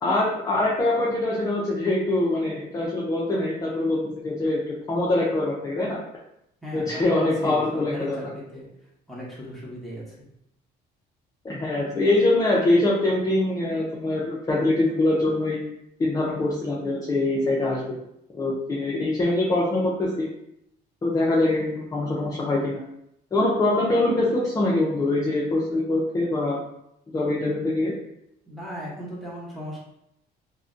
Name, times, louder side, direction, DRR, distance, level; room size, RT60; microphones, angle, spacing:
voice 1, 0.0-6.0 6.7-8.2 11.4-15.6 16.0-17.9 18.3-20.3 21.0-22.8 23.3-26.6 27.1-27.9, left 2 dB, 20° left, -5 dB, 0.4 m, -23 dB
voice 2, 6.6-8.7 9.1-10.2 28.5-29.8, equal, ahead, -6 dB, 0.9 m, -37 dB
2.5 x 2.1 x 2.5 m, 0.80 s
cardioid pair, 110°, 17 cm